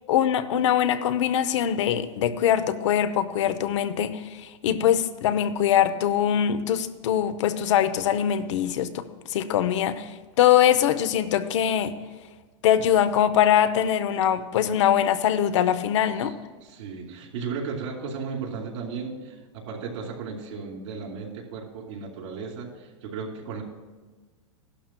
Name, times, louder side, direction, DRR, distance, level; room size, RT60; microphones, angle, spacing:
voice 1, 0.1-9.0 9.3-11.9 12.6-16.3, left 10 dB, 70° left, 11 dB, 0.7 m, -22 dB
voice 2, 16.6-23.6, right 5 dB, 70° right, -1 dB, 2.7 m, -35 dB
15.5 x 11.5 x 2.2 m, 1.4 s
hypercardioid pair, 125°, 16 cm